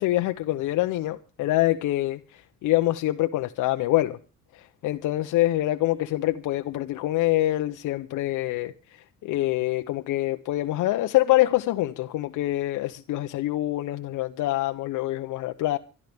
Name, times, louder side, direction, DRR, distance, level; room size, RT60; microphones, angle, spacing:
voice 1, 0.0-4.2 4.5-8.7 9.2-15.8, left 16 dB, 80° left, 0.7 m, -25 dB
24.5 x 12.0 x 3.4 m
cardioid pair, 90°, 30 cm